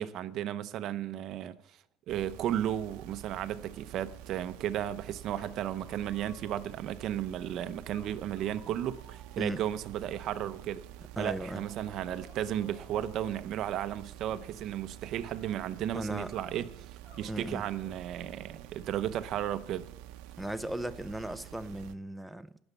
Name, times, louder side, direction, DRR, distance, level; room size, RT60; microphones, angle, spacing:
voice 1, 0.0-1.8 2.1-10.8 11.2-19.9, right 11 dB, 45° right, 0.7 m, -34 dB
sound 1, 2.1-21.9, right 13 dB, 85° right, 0.7 m, -49 dB
sound 2, 5.3-6.8 7.4-7.5 7.9-10.3 11.5-13.4 15.2-15.7 16.3-16.6 17.0-18.0, left 2 dB, 35° left, 3.7 m, -56 dB
voice 2, 11.2-11.6 15.9-16.3 17.3-17.6 20.4-22.6, right 1 dB, ahead, 0.5 m, -36 dB
19.0 x 7.1 x 6.9 m
cardioid pair, 170°, 0 cm